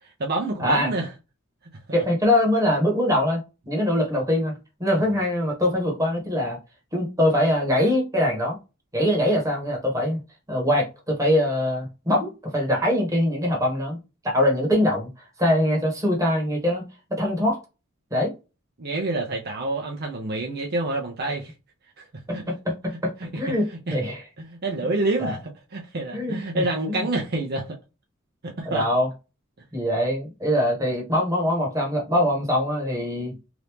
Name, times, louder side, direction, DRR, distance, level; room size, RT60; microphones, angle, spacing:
voice 1, 0.0-1.1 1.9-2.0 5.0-5.1 18.8-21.5 22.0-22.1 22.3-22.5 23.2-23.4 23.9-24.0 24.4-27.8 28.4-28.9, right 2 dB, 50° right, 0.7 m, -28 dB
voice 2, 0.6-0.9 1.9-4.5 4.8-6.6 6.9-8.6 8.9-10.2 10.5-14.0 14.2-15.1 15.4-17.6 18.1-18.3 22.3-24.2 25.2-25.3 26.1-27.0 28.6-29.1 29.7-33.4, left 1 dB, 15° right, 1.2 m, -23 dB
2.9 x 2.6 x 3.4 m
head